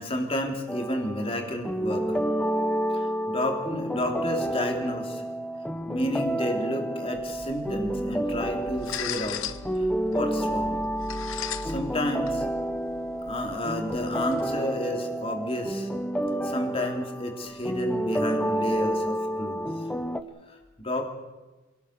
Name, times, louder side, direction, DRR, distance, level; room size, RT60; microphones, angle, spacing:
voice 1, 0.0-2.3 2.9-5.2 5.9-9.4 9.8-10.8 11.6-12.5 13.2-15.9 16.4-19.7 20.5-21.1, left 1 dB, 30° left, 2 dB, 3.3 m, -31 dB
sound 1, 0.7-20.2, right 1 dB, 5° left, 0.9 m, -30 dB
sound 2, 7.1-14.4, left 7 dB, 80° left, 1.0 m, -39 dB
27.0 x 18.0 x 6.8 m, 1.2 s
head